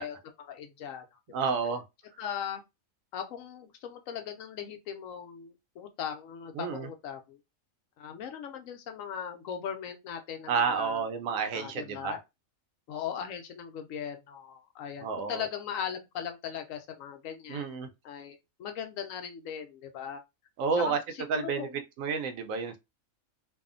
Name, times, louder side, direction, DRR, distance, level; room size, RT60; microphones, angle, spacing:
voice 1, 0.0-1.5 2.2-2.6 3.1-7.4 8.0-11.1 11.5-12.2 12.9-20.2 20.7-21.8, left 8 dB, 75° left, 1.0 m, -39 dB
voice 2, 1.3-1.8 6.6-6.9 10.5-12.2 15.0-15.5 17.5-17.9 20.6-21.0 21.3-21.7 22.0-22.8, right 5 dB, 80° right, 1.0 m, -30 dB
2.6 x 2.4 x 2.4 m
omnidirectional pair, 1.4 m